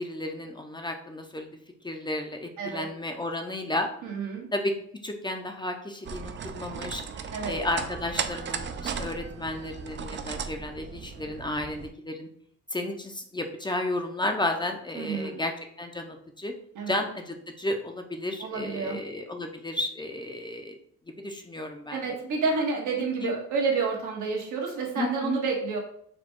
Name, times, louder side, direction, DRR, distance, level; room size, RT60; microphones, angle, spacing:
voice 1, 0.0-1.5 1.8-3.9 4.5-4.7 5.0-12.3 12.7-16.5 16.9-20.8 21.1-22.1 23.2-23.3 25.0-25.4, left 1 dB, 15° left, 4 dB, 0.5 m, -33 dB
voice 2, 4.0-4.5 7.3-7.5 15.0-15.4 16.7-17.0 18.4-19.0 21.9-25.8, right 4 dB, 80° right, 0 dB, 1.3 m, -29 dB
sound 1, 6.0-11.9, right 6 dB, 40° right, 0.4 m, -36 dB
4.2 x 2.3 x 4.4 m, 0.64 s
cardioid pair, 90°, 30 cm